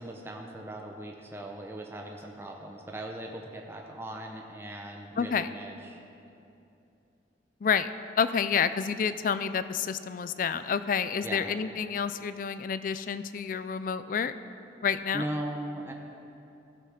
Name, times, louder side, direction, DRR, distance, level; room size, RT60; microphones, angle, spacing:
voice 1, 0.0-6.0 11.2-11.5 15.1-15.9, right 1 dB, 15° right, 1 dB, 0.7 m, -39 dB
voice 2, 5.2-5.5 7.6-7.9 8.2-14.3 14.8-15.3, left 6 dB, 50° left, 13 dB, 0.4 m, -29 dB
15.0 x 5.6 x 6.5 m, 2.8 s
head